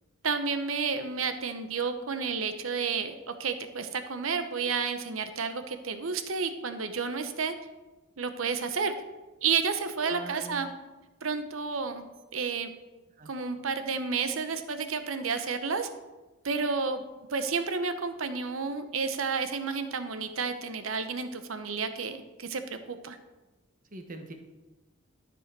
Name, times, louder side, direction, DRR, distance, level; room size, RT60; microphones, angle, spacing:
voice 1, 0.2-7.5 8.2-8.9 9.4-10.7 11.2-12.0 12.3-12.7 13.3-15.9 16.4-17.0 17.3-23.2, right 5 dB, 75° right, 9 dB, 0.8 m, -31 dB
voice 2, 10.0-10.7 13.2-13.3 23.9-24.3, right 2 dB, 40° right, 5 dB, 1.1 m, -42 dB
12.5 x 5.4 x 4.6 m, 1.1 s
head